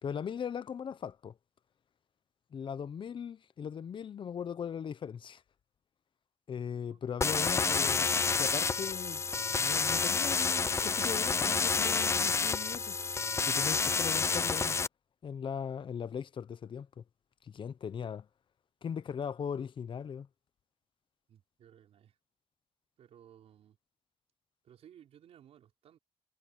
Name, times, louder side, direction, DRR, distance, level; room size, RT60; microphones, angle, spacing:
voice 1, 0.0-1.4 2.5-5.4 6.5-9.2 9.5-13.0 13.5-14.8 15.2-17.0 17.4-18.3 18.8-20.3, left 7 dB, 50° left, 0.8 m, -39 dB
voice 2, 6.9-7.6 21.3-22.2 23.0-23.8 24.6-26.0, right 10 dB, 80° right, 5.4 m, -58 dB
sound 1, 7.2-14.9, left 5 dB, 25° left, 0.4 m, -29 dB
cardioid pair, 95°, 10 cm